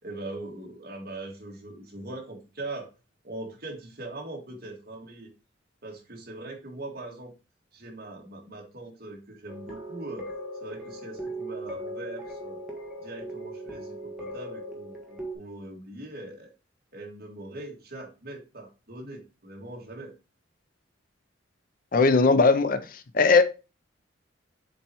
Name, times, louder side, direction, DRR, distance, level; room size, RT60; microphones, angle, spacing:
voice 1, 0.0-2.9 3.2-5.3 5.8-7.3 7.7-10.3 10.6-12.6 13.0-16.5 16.9-20.1, right 2 dB, 50° right, 2.1 m, -41 dB
sound 1, 9.5-15.3, right 1 dB, 5° right, 1.6 m, -38 dB
voice 2, 21.9-22.8 23.1-23.4, left 4 dB, 45° left, 0.6 m, -18 dB
7.4 x 4.2 x 3.0 m
head